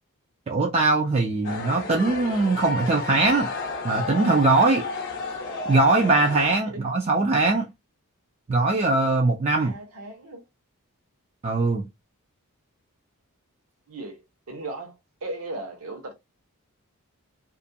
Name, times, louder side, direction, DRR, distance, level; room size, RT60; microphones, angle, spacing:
voice 1, 0.5-3.5 3.8-4.8 5.7-7.7 8.5-9.7 11.4-11.8, right 3 dB, 30° right, 0.3 m, -21 dB
sound 1, 1.4-6.5, left 3 dB, 55° left, 0.6 m, -32 dB
voice 2, 9.5-10.4 13.9-16.1, right 2 dB, 70° right, 0.8 m, -37 dB
2.4 x 2.2 x 2.6 m
head